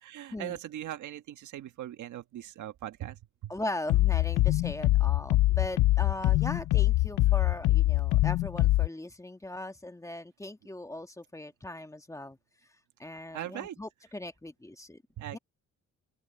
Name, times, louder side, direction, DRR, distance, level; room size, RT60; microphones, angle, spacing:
voice 1, 0.0-3.5 13.3-13.8 15.2-15.4, right 12 dB, 75° right, 1.6 m, -40 dB
voice 2, 3.5-12.4 13.0-15.0 15.3-15.4, left 1 dB, 10° left, 1.4 m, -39 dB
sound 1, 3.9-8.9, left 17 dB, 80° left, 0.5 m, -24 dB
open air
cardioid pair, 90°, 30 cm